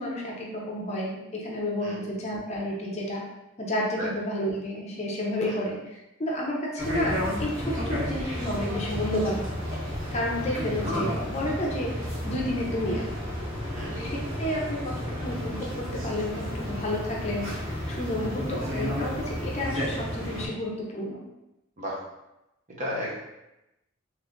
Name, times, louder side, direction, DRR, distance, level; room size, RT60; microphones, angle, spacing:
voice 1, 0.0-3.2 3.6-9.4 10.1-13.1 14.0-21.2, left 1 dB, 30° left, -3 dB, 0.6 m, -31 dB
sound 1, 6.8-20.5, equal, 75° right, 1.4 m, -32 dB
voice 2, 13.7-14.1 18.2-18.3 21.8-22.0 22.7-23.2, equal, 40° right, -4 dB, 0.7 m, -34 dB
2.9 x 2.4 x 3.4 m, 0.93 s
head